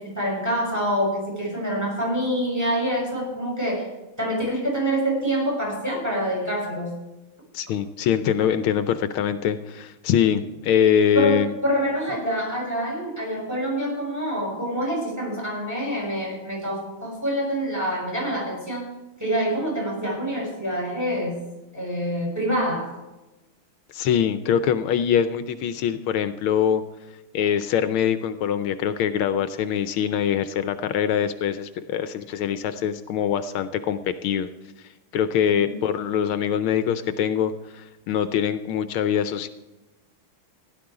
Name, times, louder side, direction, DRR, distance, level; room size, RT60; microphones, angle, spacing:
voice 1, 0.0-3.9 4.2-6.9 11.1-18.9 19.2-21.4 21.7-22.9 35.5-35.7, equal, 5° right, -3 dB, 6.7 m, -26 dB
voice 2, 7.5-11.5 23.9-26.8 27.3-34.5 35.1-39.5, left 8 dB, 80° left, 11 dB, 1.5 m, -23 dB
16.0 x 11.5 x 4.8 m, 1.0 s
omnidirectional pair, 2.3 m